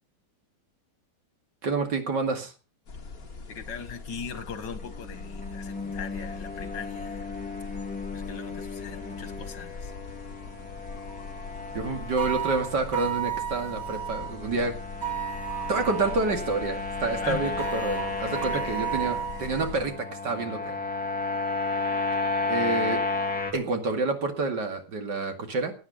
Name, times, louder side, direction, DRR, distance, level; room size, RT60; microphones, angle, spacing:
voice 1, 1.6-2.5 11.7-14.8 15.7-20.7 22.5-23.0 23.5-25.7, right 3 dB, 70° right, 5 dB, 2.8 m, -28 dB
sound 1, 2.9-19.9, left 4 dB, 50° left, 2.4 m, -42 dB
voice 2, 3.5-7.3 8.1-9.9 17.2-17.6 18.5-18.6, left 7 dB, 75° left, 11 dB, 2.3 m, -39 dB
sound 2, 4.8-23.5, left 3 dB, 5° left, 2.2 m, -33 dB
sound 3, 12.2-14.3 15.0-16.3 17.6-19.8, right 12 dB, 50° right, 3.0 m, -33 dB
16.5 x 9.8 x 5.1 m, 0.34 s
omnidirectional pair, 1.9 m